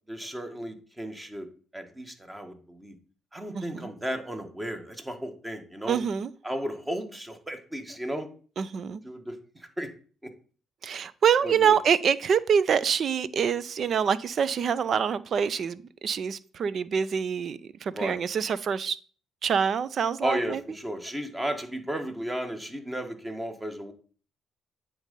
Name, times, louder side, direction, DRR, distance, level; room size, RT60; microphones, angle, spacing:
voice 1, 0.1-1.5 1.7-2.9 3.3-6.0 6.4-8.3 9.0-9.9 11.4-11.8 17.9-18.2 20.2-23.9, equal, 15° right, 1.7 m, -34 dB
voice 2, 3.5-3.9 5.9-6.3 8.6-9.0 10.8-19.0 19.4-20.6, right 7 dB, 55° right, 0.6 m, -26 dB
8.9 x 3.9 x 5.4 m
supercardioid pair, 60°, 0 cm